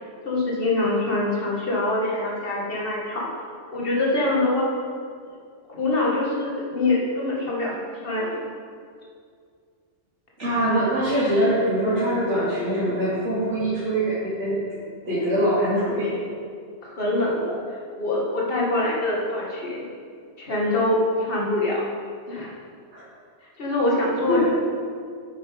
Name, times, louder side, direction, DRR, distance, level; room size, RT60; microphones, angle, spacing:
voice 1, 0.2-3.3 3.7-4.7 5.7-7.8 8.0-8.4 16.8-17.6 18.0-19.9 20.4-21.8 22.3-22.5 23.6-24.4, left 2 dB, 50° left, -4 dB, 2.1 m, -24 dB
voice 2, 10.4-14.5 15.0-16.1 22.9-23.0 24.3-24.4, equal, 80° right, -12 dB, 3.0 m, -23 dB
8.8 x 8.7 x 5.1 m, 2.2 s
omnidirectional pair, 1.2 m